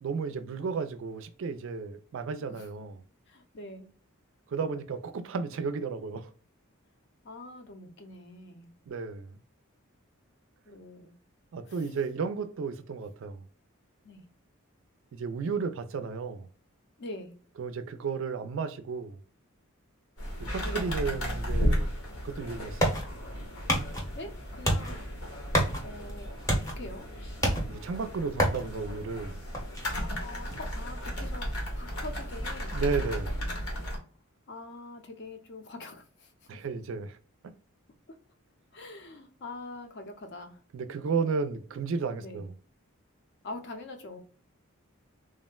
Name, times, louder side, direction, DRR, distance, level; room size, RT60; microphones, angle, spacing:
voice 1, 0.0-3.0 4.5-6.3 8.9-9.4 11.5-13.4 15.1-16.5 17.6-19.2 20.4-21.9 22.2-23.0 27.6-29.4 32.7-33.4 36.5-37.1 37.4-37.5 40.7-42.5, right 5 dB, 60° right, 0.3 m, -33 dB
voice 2, 3.3-3.9 7.2-8.7 10.7-11.1 11.6-11.9 14.0-14.3 17.0-17.3 20.6-20.9 24.1-25.0 25.8-27.1 30.0-31.5 31.7-32.8 34.5-36.5 38.1-38.2 38.7-40.6 42.2-42.5 43.4-44.2, left 2 dB, 55° left, 0.6 m, -44 dB
sound 1, 20.2-34.0, equal, 80° left, 1.0 m, -35 dB
sound 2, 22.1-33.5, equal, 15° left, 0.7 m, -33 dB
3.4 x 2.1 x 2.2 m
head